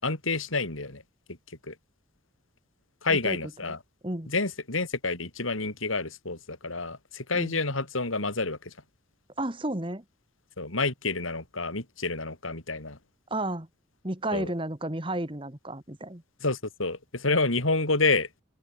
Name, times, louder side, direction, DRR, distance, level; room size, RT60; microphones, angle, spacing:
voice 1, 0.0-1.0 1.3-1.4 1.6-1.7 3.0-3.8 4.3-8.7 10.6-13.0 14.3-14.5 16.4-18.3, left 3 dB, 85° left, 4.6 m, -28 dB
voice 2, 9.4-10.0 13.3-13.7 14.0-16.2, right 1 dB, 25° right, 1.9 m, -32 dB
open air
head